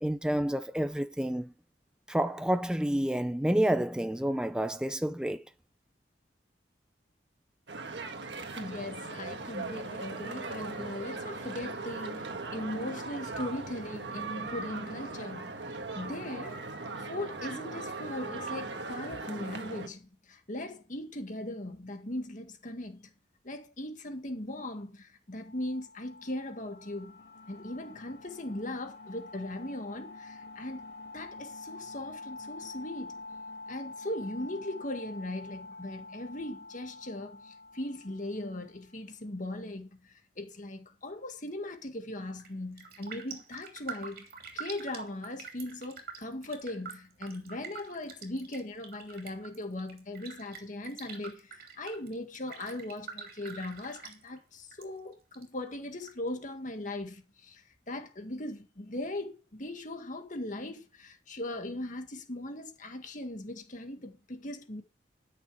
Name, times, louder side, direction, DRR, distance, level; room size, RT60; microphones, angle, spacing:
voice 1, 0.0-1.5 2.1-5.4, right 1 dB, 5° right, 0.4 m, -29 dB
sound 1, 7.7-19.9, right 3 dB, 70° right, 1.5 m, -39 dB
voice 2, 8.6-16.6 17.0-23.1 23.4-27.2 27.5-30.9 31.1-33.2 33.7-44.3 44.5-64.8, left 1 dB, 45° left, 1.9 m, -39 dB
sound 2, 25.4-38.8, left 3 dB, 75° left, 2.7 m, -47 dB
Raindrop, 42.3-42.5 42.8-54.9 55.1-56.1 56.5-56.6, right 6 dB, 55° right, 3.1 m, -46 dB
13.0 x 6.8 x 4.9 m
head